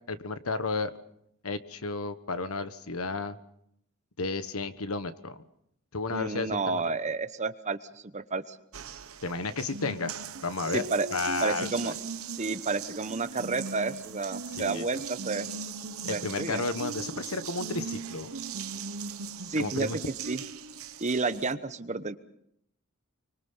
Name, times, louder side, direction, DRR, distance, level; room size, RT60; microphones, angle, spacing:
voice 1, 0.1-0.9 1.4-3.4 4.2-5.4 5.9-6.8 9.2-10.1 10.4-10.8 11.1-11.9 14.6-15.0 16.0-18.3 19.6-20.0, left 3 dB, 85° left, 11 dB, 1.4 m, -32 dB
voice 2, 6.1-7.8 8.1-8.6 10.7-11.1 11.4-11.9 12.3-15.5 16.1-16.6 19.4-20.4 21.0-22.2, right 3 dB, 35° right, 11 dB, 1.0 m, -31 dB
Water tap faucet, 8.7-21.5, right 5 dB, 75° right, 1.1 m, -39 dB
25.0 x 24.5 x 5.7 m, 0.72 s
head